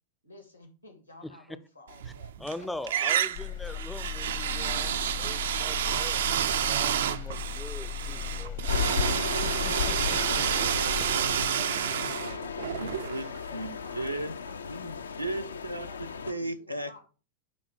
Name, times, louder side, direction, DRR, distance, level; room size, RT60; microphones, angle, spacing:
voice 1, 0.2-2.7 3.3-3.4 3.7-3.8 4.3-4.6 8.6-9.6 11.3-12.8 13.2-17.0, left 2 dB, 90° left, 2.0 m, -52 dB
sound 1, 2.0-2.6 2.9-13.7, right 10 dB, 60° right, 0.4 m, -29 dB
voice 2, 2.4-8.6 9.4-11.1, left 1 dB, 5° left, 0.4 m, -42 dB
sound 2, 3.3-11.1, left 10 dB, 55° left, 0.9 m, -37 dB
sound 3, 8.7-16.3, left 6 dB, 70° left, 0.4 m, -34 dB
voice 3, 12.8-14.3 14.6-17.0, right 1 dB, 90° right, 0.7 m, -36 dB
9.7 x 3.8 x 4.7 m
figure-of-eight pair, 90°, 0 cm